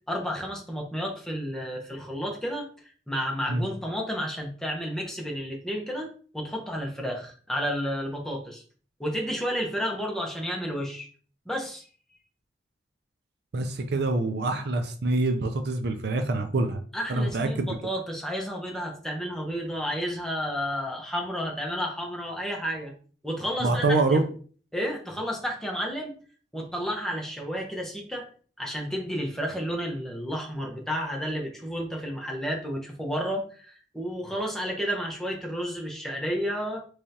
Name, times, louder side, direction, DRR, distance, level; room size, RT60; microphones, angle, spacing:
voice 1, 0.1-2.7 3.1-6.1 6.3-8.6 9.0-11.1 11.5-11.8 16.9-22.9 23.2-24.2 24.7-26.1 26.5-28.3 28.6-36.8, equal, 5° left, -1 dB, 0.8 m, -31 dB
voice 2, 13.5-16.8 17.1-17.8 23.6-24.2, right 2 dB, 65° right, 7 dB, 0.5 m, -25 dB
3.5 x 3.3 x 2.8 m, 0.42 s
head